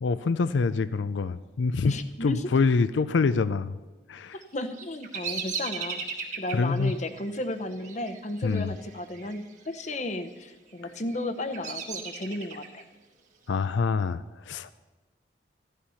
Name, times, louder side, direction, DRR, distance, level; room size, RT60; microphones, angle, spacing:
voice 1, 0.0-3.8 4.1-4.4 6.5-6.9 8.4-8.7 13.5-14.7, left 4 dB, 85° left, 13 dB, 0.4 m, -26 dB
voice 2, 1.9-2.5 4.5-6.1 6.4-12.8, left 1 dB, 40° left, 9 dB, 0.8 m, -34 dB
Bird vocalization bird call bird song, 4.4-9.4 9.7-10.3 10.8-12.8, right 5 dB, 40° right, 1.7 m, -37 dB
14.0 x 11.5 x 5.7 m, 1.2 s
head